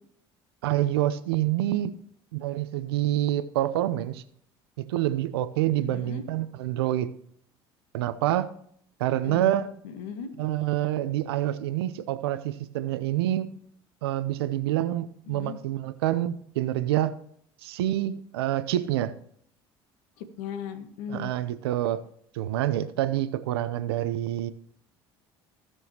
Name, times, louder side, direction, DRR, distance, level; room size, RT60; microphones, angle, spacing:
voice 1, 0.6-1.9 2.3-4.2 4.8-7.1 7.9-8.5 9.0-9.7 10.4-13.5 14.0-17.1 17.6-19.1 21.1-22.0 22.3-24.5, right 13 dB, 85° right, 13 dB, 0.7 m, -27 dB
voice 2, 5.7-6.3 9.2-9.5 9.8-10.3 15.3-15.6 20.2-21.3, left 7 dB, 75° left, 8 dB, 1.5 m, -37 dB
17.0 x 6.3 x 3.0 m, 0.66 s
hypercardioid pair, 70°, 13 cm